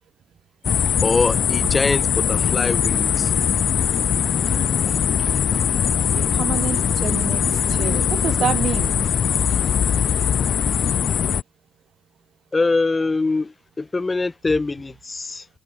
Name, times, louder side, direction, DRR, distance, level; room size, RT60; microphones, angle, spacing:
sound 1, 0.6-11.4, left 8 dB, 60° left, 0.6 m, -21 dB
voice 1, 1.0-3.3 12.5-15.4, left 3 dB, 25° left, 1.1 m, -23 dB
voice 2, 6.2-8.9, right 9 dB, 60° right, 0.6 m, -28 dB
cardioid pair, 90°, 0 cm